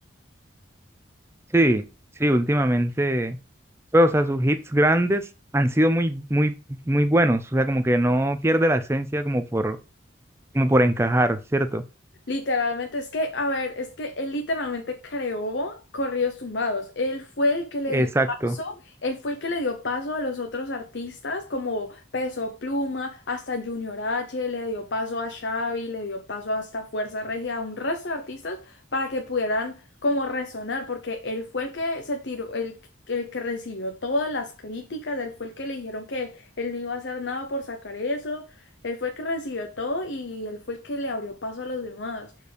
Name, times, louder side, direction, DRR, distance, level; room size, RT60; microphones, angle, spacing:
voice 1, 1.5-1.8 2.2-3.4 3.9-5.2 5.5-9.8 10.5-11.8 17.9-18.5, right 1 dB, 15° right, 0.6 m, -21 dB
voice 2, 12.3-18.1 18.5-32.8 33.1-38.5 38.8-42.3, left 2 dB, 70° left, 0.9 m, -29 dB
6.7 x 4.6 x 5.1 m
head